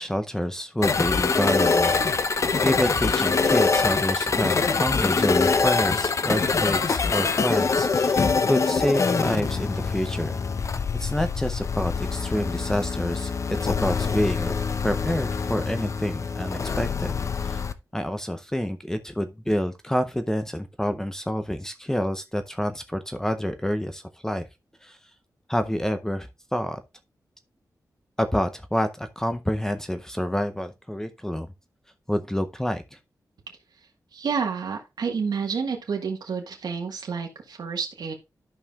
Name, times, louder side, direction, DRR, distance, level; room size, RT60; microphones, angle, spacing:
voice 1, 0.0-2.0 2.6-10.4 10.9-14.5 14.8-17.1 17.4-17.6 17.9-24.4 24.8-25.0 25.5-26.8 28.2-31.5 32.1-32.8, equal, 5° left, 0.6 m, -27 dB
sound 1, 0.8-17.7, left 4 dB, 45° left, 0.6 m, -24 dB
voice 2, 34.1-38.1, right 5 dB, 80° right, 1.4 m, -29 dB
12.5 x 5.4 x 2.3 m
wide cardioid pair, 130°, 7 cm